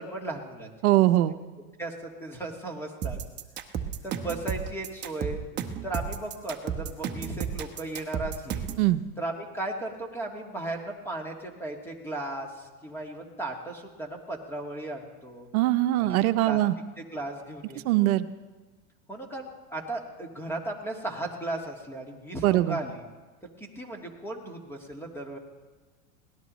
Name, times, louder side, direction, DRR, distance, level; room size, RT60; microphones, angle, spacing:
voice 1, 0.0-0.7 1.8-3.2 4.0-5.4 5.8-8.7 9.2-15.5 16.0-16.6 17.0-18.1 19.1-23.0 23.6-25.4, right 2 dB, 5° left, 2 dB, 1.9 m, -36 dB
voice 2, 0.8-1.4 8.8-9.0 15.5-16.7 17.8-18.3 22.4-22.8, right 16 dB, 75° right, 10 dB, 0.8 m, -22 dB
sound 1, 3.0-8.9, right 8 dB, 25° right, 1.0 m, -33 dB
24.0 x 18.0 x 3.1 m, 1.3 s
supercardioid pair, 145°, 44 cm